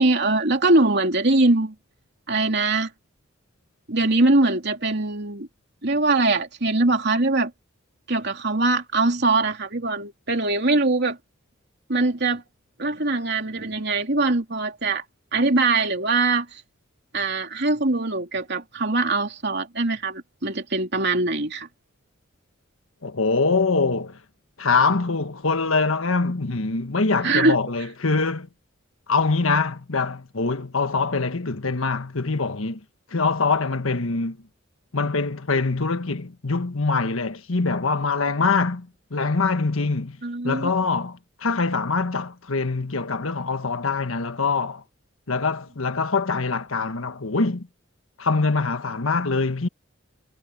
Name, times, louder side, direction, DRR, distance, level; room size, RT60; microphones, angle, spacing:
voice 1, 0.0-1.7 2.3-2.9 3.9-5.5 5.8-7.5 8.1-11.2 11.9-12.4 12.8-15.0 15.3-16.6 17.1-21.7 27.2-27.6 40.2-40.7, right 2 dB, 55° right, 3.2 m, -22 dB
voice 2, 23.0-24.2 24.6-28.5 29.1-32.8 33.1-34.4 34.9-40.2 40.4-44.8 45.3-47.7 48.2-49.7, left 4 dB, 90° left, 1.4 m, -24 dB
head